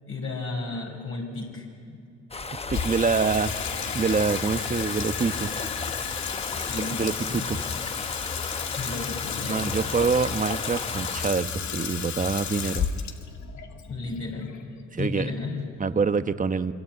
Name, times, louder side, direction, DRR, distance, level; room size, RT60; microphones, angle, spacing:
voice 1, 0.1-2.0 6.6-7.5 8.8-9.9 13.9-14.5 15.0-15.7, left 3 dB, 45° left, -1 dB, 5.6 m, -34 dB
sound 1, 2.3-11.3, left 4 dB, 20° left, 0.9 m, -35 dB
voice 2, 2.5-3.5 3.9-5.5 6.8-7.7 9.5-12.9 14.9-15.3 15.8-16.7, right 5 dB, 25° right, 10 dB, 1.0 m, -26 dB
Water tap faucet / Sink (filling or washing), 2.7-15.1, left 7 dB, 65° left, 2.2 m, -33 dB
26.0 x 23.5 x 9.1 m, 2.3 s
cardioid pair, 90°, 30 cm